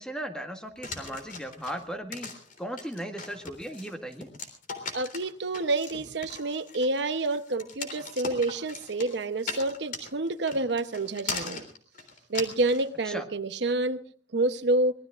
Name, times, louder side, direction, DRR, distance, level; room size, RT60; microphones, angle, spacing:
voice 1, 0.0-2.3 2.6-4.3 13.1-13.3, equal, 5° left, 6 dB, 1.6 m, -37 dB
sound 1, 0.8-12.9, left 4 dB, 45° left, 3.4 m, -39 dB
voice 2, 4.9-11.6 12.3-14.0 14.3-14.9, right 2 dB, 65° right, 10 dB, 0.9 m, -28 dB
25.0 x 20.0 x 2.5 m, 0.38 s
head